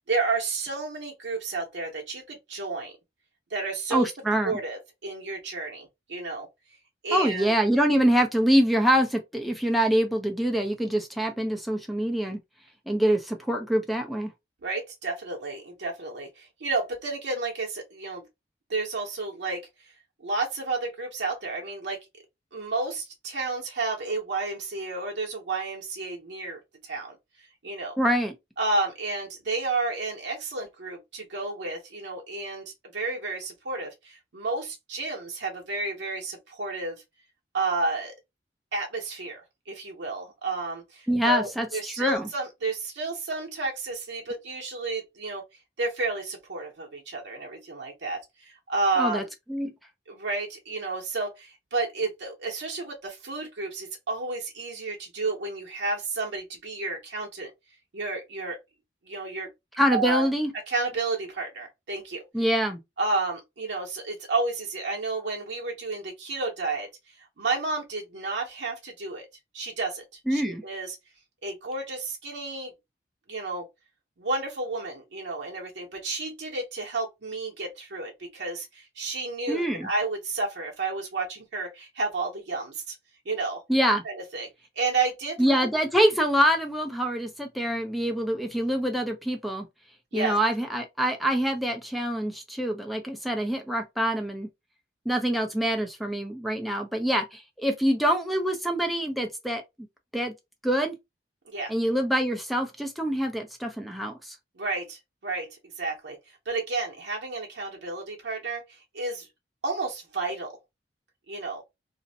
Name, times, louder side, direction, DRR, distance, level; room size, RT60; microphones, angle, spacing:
voice 1, 0.0-2.9 3.5-4.1 4.4-6.5 7.0-7.5 14.6-18.2 18.7-19.6 20.2-22.0 22.5-28.0 28.6-37.0 37.5-38.1 38.7-39.4 39.7-45.4 45.8-49.3 50.1-57.5 57.9-58.6 59.1-59.5 59.9-60.3 60.7-62.2 63.0-66.9 67.2-69.3 69.5-71.0 71.4-72.7 73.3-73.7 74.2-83.0 83.3-83.6 84.0-84.5 84.8-85.7 90.1-90.4 101.5-101.7 104.6-105.5 105.8-109.3 109.6-110.5 111.3-111.6, right 3 dB, 90° right, 0.7 m, -31 dB
voice 2, 3.9-4.5 7.1-12.4 12.9-14.3 28.0-28.3 41.1-42.3 49.0-49.2 49.5-49.7 59.8-60.5 62.3-62.8 70.3-70.6 79.5-79.9 83.7-84.0 85.4-89.7 90.1-94.5 95.1-99.6 100.1-100.3 100.6-101.0 101.7-104.4, equal, ahead, 0.4 m, -25 dB
2.5 x 2.0 x 2.6 m
head